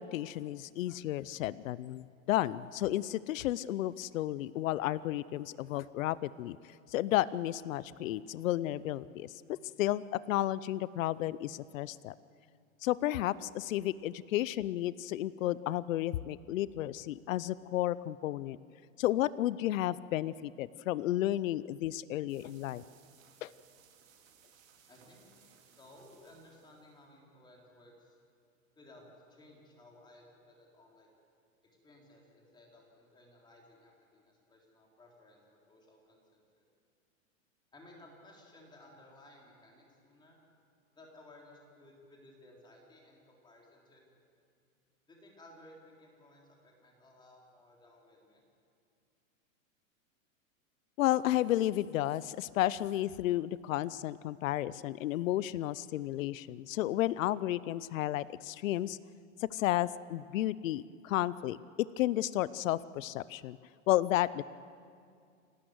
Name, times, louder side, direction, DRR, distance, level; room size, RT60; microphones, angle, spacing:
voice 1, 0.0-6.6 6.9-9.4 9.8-12.1 12.8-18.6 19.0-22.8 23.4-23.5 51.0-59.0 59.4-61.6 62.0-63.6 63.9-64.4, left 14 dB, 70° left, 19 dB, 0.6 m, -32 dB
sound 1, 22.3-27.0, right 8 dB, 70° right, 4.0 m, -63 dB
voice 2, 24.9-28.2 28.7-31.1 31.6-36.6 37.7-40.4 40.9-44.0 45.1-48.4, left 1 dB, 10° left, -1 dB, 3.7 m, -58 dB
29.5 x 12.5 x 7.9 m, 2.3 s
hypercardioid pair, 150°, 41 cm